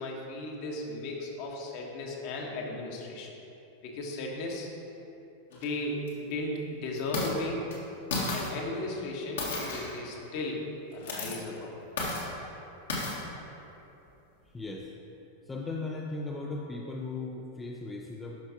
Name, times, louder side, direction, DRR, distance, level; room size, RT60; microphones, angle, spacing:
voice 1, 0.0-3.3 3.8-4.7 5.5-7.7 8.3-10.7 10.9-11.7, left 2 dB, 45° left, -1 dB, 1.3 m, -36 dB
sound 1, 5.5-5.6 6.1-6.2 6.9-7.3 7.7-7.8 8.1-8.5 9.4-10.0 10.9-11.4 12.0-12.3 12.9-13.2, left 2 dB, 65° left, 1.6 m, -32 dB
voice 2, 14.5-14.9 15.5-18.4, left 3 dB, 15° left, -1 dB, 0.5 m, -37 dB
12.0 x 5.7 x 2.9 m, 2.9 s
figure-of-eight pair, 90°, 0 cm